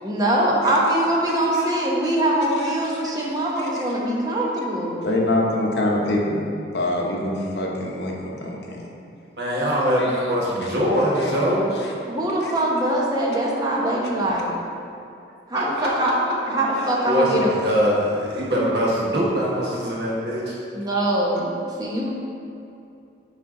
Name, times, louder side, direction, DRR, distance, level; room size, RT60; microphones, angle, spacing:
voice 1, 0.0-5.0 12.1-14.5 15.5-16.1 16.5-17.5 20.7-21.5 21.8-22.1, right 1 dB, 20° right, -3 dB, 0.9 m, -22 dB
voice 2, 5.0-8.2 8.4-8.9 10.0-10.1 11.2-11.3 11.8-11.9 12.4-12.5, left 1 dB, 65° left, -2 dB, 0.9 m, -25 dB
voice 3, 9.4-11.6 15.5-16.1 17.0-20.5, equal, 60° right, -5 dB, 1.4 m, -22 dB
9.8 x 3.4 x 3.7 m, 2.6 s
head